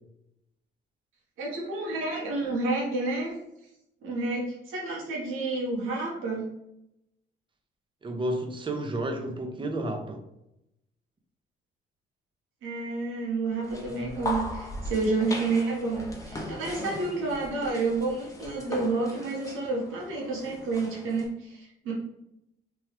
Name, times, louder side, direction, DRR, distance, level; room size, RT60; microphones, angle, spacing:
voice 1, 1.4-3.3 4.0-6.5 12.6-21.9, right 3 dB, 80° right, -4 dB, 1.1 m, -30 dB
voice 2, 8.0-10.2, right 1 dB, 25° right, 4 dB, 0.6 m, -31 dB
sound 1, 13.6-21.3, left 1 dB, 15° left, 0.7 m, -38 dB
2.9 x 2.3 x 3.2 m, 0.84 s
cardioid pair, 90°, 20 cm